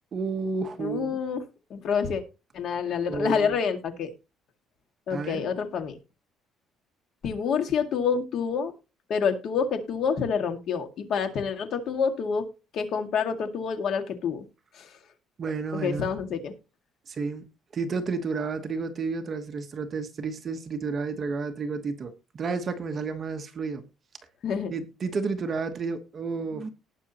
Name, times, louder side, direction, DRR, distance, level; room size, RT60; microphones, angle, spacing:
voice 1, 0.1-1.2 3.1-3.5 5.1-5.5 15.4-16.1 17.1-17.5 17.7-23.8 24.7-26.7, right 4 dB, 30° right, 1.2 m, -31 dB
voice 2, 0.8-1.4 1.7-2.2 2.5-4.1 5.1-6.0 7.2-8.7 9.1-12.4 12.7-14.5 14.8-14.9 15.7-16.5 24.4-24.7, left 6 dB, 50° left, 2.0 m, -27 dB
19.0 x 6.3 x 3.0 m
cardioid pair, 170°, 0 cm